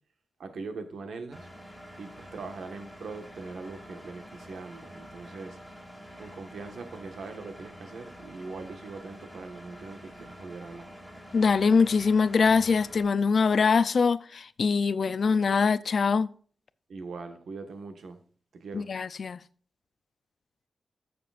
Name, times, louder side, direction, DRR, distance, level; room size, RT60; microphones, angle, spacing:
voice 1, 0.4-1.5 2.0-5.6 6.2-10.9 16.9-18.2 18.5-18.9, right 4 dB, 90° right, 1.4 m, -41 dB
Engine, 1.3-13.0, equal, ahead, 2.4 m, -47 dB
voice 2, 11.3-16.3 18.7-19.4, left 5 dB, 55° left, 0.4 m, -23 dB
13.5 x 6.8 x 2.5 m
wide cardioid pair, 145°, 0 cm